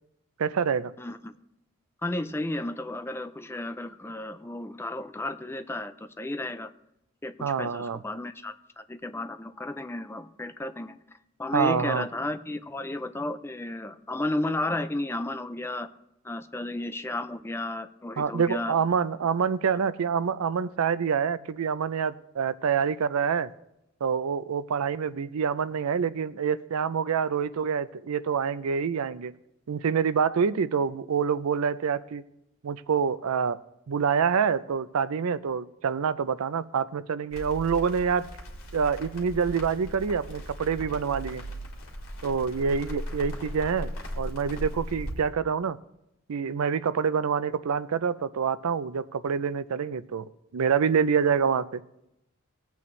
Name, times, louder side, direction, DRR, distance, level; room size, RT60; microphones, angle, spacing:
voice 1, 0.4-0.9 7.4-8.0 11.5-12.0 18.2-23.5 24.0-29.3 29.7-32.2 32.6-33.6 33.9-38.3 38.7-41.4 42.2-45.8 46.3-51.8, right 6 dB, 85° right, 15 dB, 0.5 m, -26 dB
voice 2, 1.0-1.3 2.0-6.7 7.2-11.0 11.4-15.9 16.2-18.7, left 1 dB, 10° left, 9 dB, 0.4 m, -33 dB
Crackle, 37.3-45.1, equal, 70° left, 2.5 m, -38 dB
19.0 x 8.4 x 3.2 m, 0.84 s
head